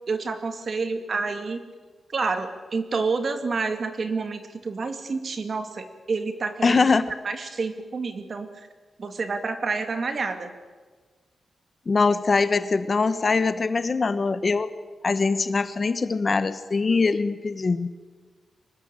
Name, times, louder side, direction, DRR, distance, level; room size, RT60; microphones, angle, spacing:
voice 1, 0.1-1.6 2.1-6.8 7.2-8.7 9.0-10.5, right 4 dB, 45° right, 8 dB, 2.4 m, -29 dB
voice 2, 6.6-7.1 11.9-14.7 15.0-17.9, left 4 dB, 35° left, 13 dB, 1.1 m, -22 dB
24.5 x 19.5 x 9.0 m, 1.4 s
wide cardioid pair, 140°, 0 cm